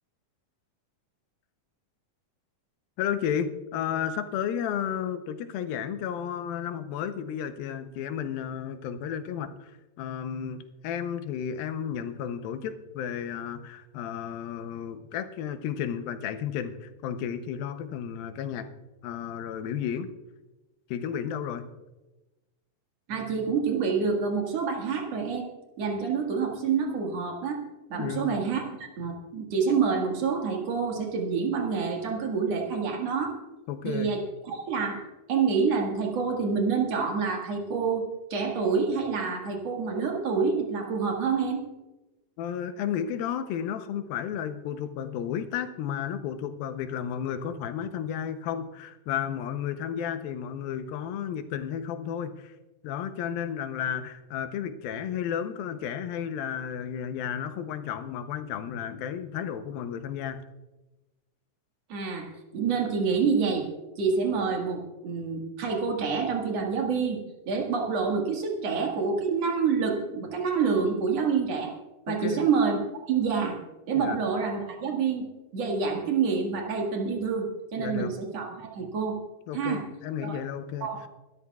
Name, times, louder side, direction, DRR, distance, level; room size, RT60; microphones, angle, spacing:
voice 1, 3.0-9.7 10.0-18.7 19.0-20.1 20.9-21.7 27.9-28.3 33.7-34.1 42.4-52.5 52.8-60.4 72.1-72.5 73.9-74.2 77.8-78.1 79.5-80.9, left 8 dB, 85° left, 9 dB, 2.7 m, -33 dB
voice 2, 23.1-25.5 25.8-27.6 27.9-33.4 33.8-38.1 38.3-41.7 61.9-63.7 64.0-67.2 67.5-71.7 72.1-72.8 73.1-73.6 73.9-75.3 75.5-79.2 79.5-79.8 80.2-80.3 80.8-81.0, right 5 dB, 50° right, 1 dB, 2.5 m, -27 dB
24.0 x 12.5 x 2.4 m, 1.1 s
omnidirectional pair, 4.1 m